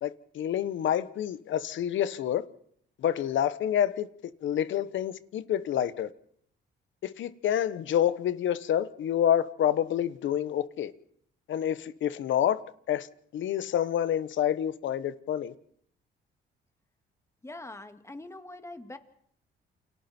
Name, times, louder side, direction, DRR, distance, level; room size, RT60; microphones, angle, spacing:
voice 1, 0.0-2.4 3.0-4.1 4.4-6.1 7.0-10.9 11.5-12.6 12.9-13.1 13.3-15.5, left 10 dB, 70° left, 1.2 m, -28 dB
voice 2, 17.4-19.0, left 2 dB, 15° left, 2.3 m, -43 dB
29.0 x 25.5 x 4.5 m
cardioid pair, 90°, 20 cm